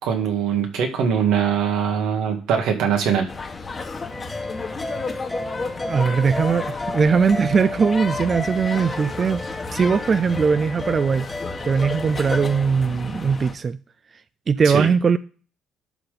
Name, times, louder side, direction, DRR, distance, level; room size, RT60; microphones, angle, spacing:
voice 1, 0.0-3.3 14.7-14.9, right 7 dB, 80° right, 2.0 m, -22 dB
sound 1, 3.3-13.5, left 3 dB, 25° left, 1.2 m, -33 dB
sound 2, 4.1-12.7, left 2 dB, 10° left, 0.6 m, -33 dB
voice 2, 5.8-9.4 9.7-11.3 11.6-13.8 14.1-15.2, right 6 dB, 30° right, 0.3 m, -20 dB
11.5 x 4.0 x 5.1 m
cardioid pair, 135°, 0 cm